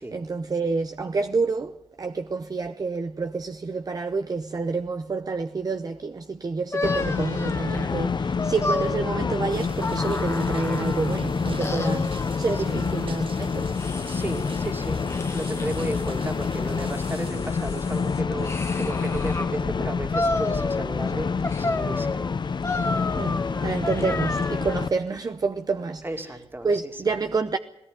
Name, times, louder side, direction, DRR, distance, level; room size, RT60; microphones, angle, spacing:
voice 1, 0.0-13.7 23.2-26.4 26.6-27.6, right 4 dB, 40° right, 0.8 m, -28 dB
sound 1, 6.7-11.2 11.6-13.1 13.7-14.7 15.1-16.1 16.7-19.5 20.1-21.1 21.4-24.9, left 2 dB, 25° left, 1.7 m, -32 dB
sound 2, 6.8-24.9, left 5 dB, 50° left, 0.7 m, -28 dB
sound 3, 9.5-17.3, right 5 dB, 65° right, 1.5 m, -45 dB
voice 2, 12.5-12.9 14.1-15.0 15.3-21.3 21.6-22.3 23.4-23.7 26.0-27.2, right 1 dB, 20° right, 2.6 m, -34 dB
19.0 x 17.5 x 9.4 m
wide cardioid pair, 85°, 10 cm